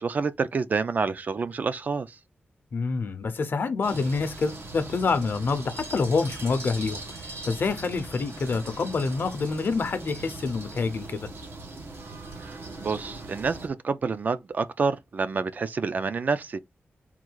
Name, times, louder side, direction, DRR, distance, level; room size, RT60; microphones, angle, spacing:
voice 1, 0.0-2.2 12.4-16.6, right 4 dB, 45° right, 0.3 m, -28 dB
voice 2, 2.7-7.0 7.4-11.3, left 4 dB, 60° left, 0.6 m, -27 dB
sound 1, 3.8-13.7, right 2 dB, 90° right, 1.0 m, -40 dB
3.7 x 2.3 x 4.5 m
wide cardioid pair, 165°, 4 cm